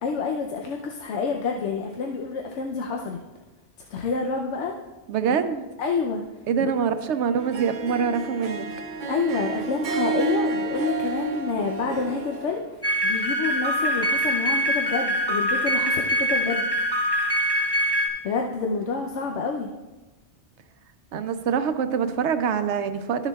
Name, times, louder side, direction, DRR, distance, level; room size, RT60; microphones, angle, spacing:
voice 1, 0.0-3.2 3.9-4.7 5.3-5.4 5.8-6.2 6.6-6.7 9.0-16.7 18.2-19.7, left 4 dB, 90° left, 2 dB, 1.0 m, -28 dB
voice 2, 5.1-5.6 6.5-8.7 21.1-23.3, right 7 dB, 80° right, 9 dB, 0.9 m, -25 dB
Harp, 7.4-12.7, right 4 dB, 50° right, 0.7 m, -30 dB
sound 1, 12.8-18.1, equal, 20° left, 1.1 m, -24 dB
13.5 x 6.8 x 2.3 m, 1.1 s
omnidirectional pair, 1.2 m